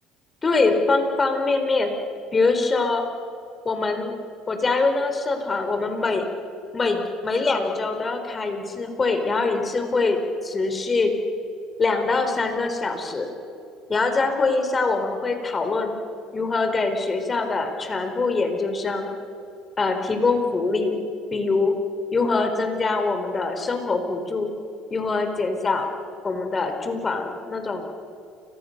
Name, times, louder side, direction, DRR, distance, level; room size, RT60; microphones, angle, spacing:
voice 1, 0.4-1.9 2.3-3.0 3.6-4.1 4.5-6.2 6.7-11.1 11.8-13.3 13.9-15.9 16.3-19.1 19.8-21.0 21.3-21.7 22.1-24.5 24.9-25.9 26.2-27.9, left 3 dB, 25° left, 6 dB, 4.5 m, -23 dB
30.0 x 25.5 x 6.8 m, 2.6 s
supercardioid pair, 105°, 0 cm